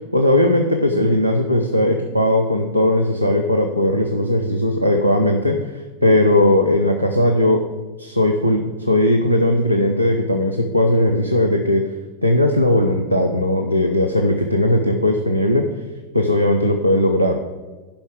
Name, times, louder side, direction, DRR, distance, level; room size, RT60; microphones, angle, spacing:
voice 1, 0.1-5.6 6.0-7.6 8.0-11.8 12.2-15.6 16.1-17.4, left 1 dB, 90° right, 3 dB, 0.7 m, -18 dB
10.5 x 5.5 x 6.5 m, 1.2 s
figure-of-eight pair, 90°, 0 cm